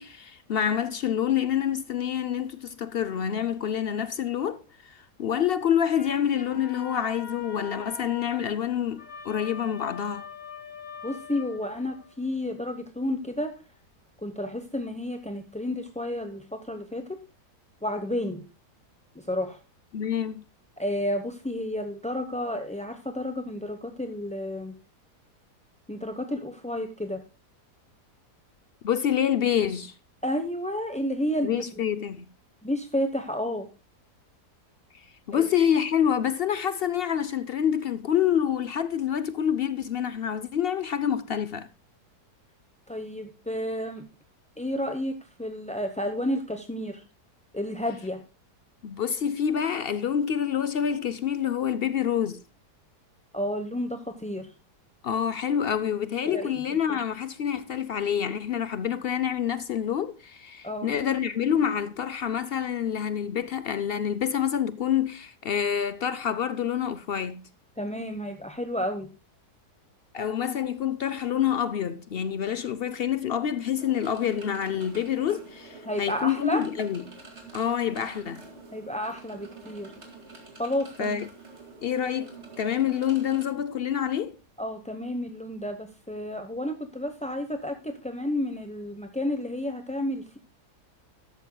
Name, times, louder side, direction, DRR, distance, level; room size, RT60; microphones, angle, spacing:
voice 1, 0.0-10.2 19.9-20.4 28.8-29.9 31.4-32.3 35.3-41.7 48.8-52.4 55.0-67.5 70.1-77.0 77.5-78.4 81.0-81.3 81.8-84.3, left 9 dB, 65° left, 0.5 m, -27 dB
sound 1, 6.0-12.2, left 6 dB, 45° left, 1.5 m, -43 dB
voice 2, 11.0-13.5 14.2-17.2 17.8-18.5 19.1-19.6 20.8-24.7 25.9-27.2 30.2-31.6 32.6-33.7 35.3-35.4 42.9-44.0 44.6-47.0 47.5-48.2 53.3-54.5 56.3-56.6 56.9-57.0 60.6-60.9 67.8-69.1 75.8-76.6 78.7-79.9 80.6-81.2 84.6-90.4, left 1 dB, 5° left, 0.5 m, -31 dB
sound 2, 73.8-83.4, right 3 dB, 40° right, 2.6 m, -47 dB
13.5 x 11.5 x 2.2 m
omnidirectional pair, 1.8 m